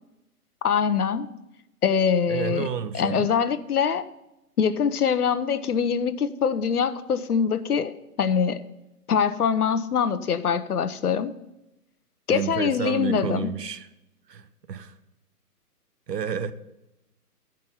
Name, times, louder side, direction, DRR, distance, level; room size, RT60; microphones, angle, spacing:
voice 1, 0.6-1.3 1.8-2.7 2.9-4.0 4.6-8.6 9.1-11.3 12.3-13.5, left 7 dB, 65° left, 0.8 m, -23 dB
voice 2, 2.3-3.3 12.3-13.9 14.3-14.9 16.1-16.5, right 7 dB, 80° right, 1.0 m, -30 dB
14.0 x 5.3 x 5.5 m
hypercardioid pair, 175°, 48 cm